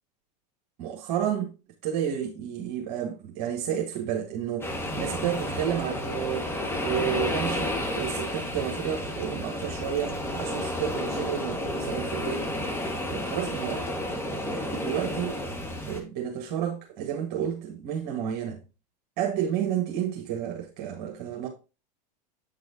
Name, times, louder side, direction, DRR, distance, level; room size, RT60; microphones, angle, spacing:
voice 1, 0.8-1.5 1.8-4.7 5.0-6.5 6.8-12.5 13.1-13.8 14.3-15.4 15.9-18.6 19.2-21.5, right 9 dB, 50° right, 1.7 m, -31 dB
sound 1, 4.6-16.0, left 1 dB, 10° left, 1.8 m, -31 dB
8.5 x 6.1 x 2.8 m
hypercardioid pair, 100°, 21 cm